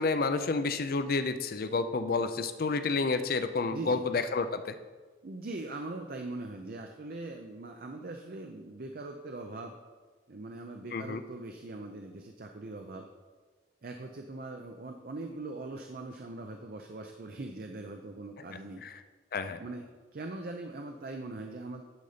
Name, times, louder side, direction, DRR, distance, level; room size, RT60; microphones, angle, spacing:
voice 1, 0.0-4.7 10.9-11.2 18.8-18.9 19.3-19.6, left 4 dB, 55° left, 10 dB, 0.5 m, -30 dB
voice 2, 3.7-4.0 5.2-9.8 10.3-13.0 13.8-18.8 19.6-21.8, right 2 dB, 55° right, 4 dB, 0.5 m, -41 dB
10.5 x 4.1 x 5.0 m, 1.4 s
head